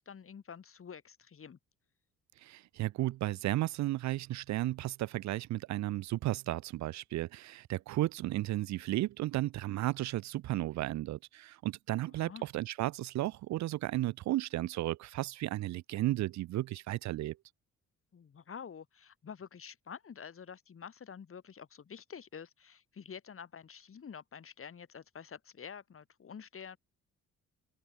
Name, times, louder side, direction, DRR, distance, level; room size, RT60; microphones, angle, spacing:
voice 1, 0.0-1.6 12.1-12.5 18.1-26.8, left 7 dB, 45° left, 5.6 m, -48 dB
voice 2, 2.4-17.4, right 16 dB, 65° right, 0.5 m, -34 dB
open air
cardioid pair, 90°, 30 cm